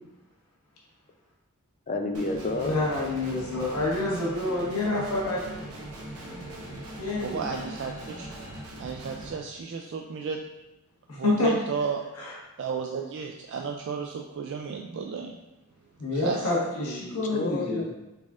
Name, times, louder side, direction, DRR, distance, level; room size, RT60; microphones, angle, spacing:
voice 1, 1.9-2.7 16.8-17.9, left 2 dB, 35° left, 3 dB, 0.5 m, -30 dB
Guitar, 2.1-9.3, right 1 dB, 80° right, 0.9 m, -41 dB
sound 1, 2.5-8.6, equal, 15° left, 1.2 m, -46 dB
voice 2, 2.6-5.6 7.0-7.5 11.1-11.5 12.1-12.3 16.0-17.9, left 2 dB, 85° left, -5 dB, 1.3 m, -28 dB
voice 3, 7.2-8.3 8.8-10.4 11.2-12.0 12.6-15.3 16.1-16.4, right 6 dB, 55° right, 2 dB, 0.3 m, -33 dB
4.1 x 3.6 x 3.6 m, 0.99 s
head